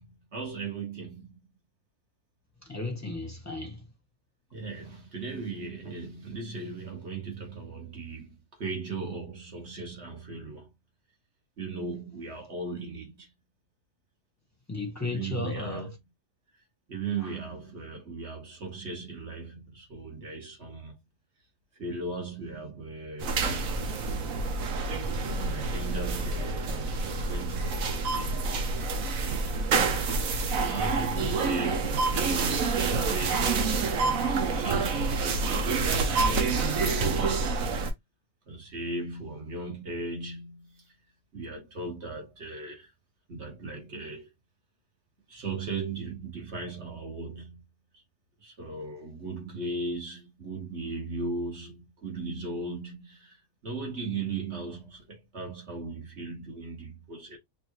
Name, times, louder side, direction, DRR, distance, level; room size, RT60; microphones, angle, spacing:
voice 1, 0.0-1.4 4.5-10.7 11.6-13.3 15.0-15.9 16.9-21.0 21.8-24.1 25.2-26.8 27.0-28.4 29.7-30.2 30.5-37.5 38.5-40.9 41.3-42.9 43.3-44.3 45.3-47.6 48.4-57.4, right 3 dB, 50° right, 1.8 m, -38 dB
voice 2, 2.6-3.9 14.7-16.0 17.2-17.3 31.1-31.4, left 3 dB, 10° left, 1.0 m, -35 dB
sound 1, 23.2-37.9, right 4 dB, 65° right, 1.2 m, -27 dB
5.3 x 2.6 x 2.9 m
omnidirectional pair, 1.6 m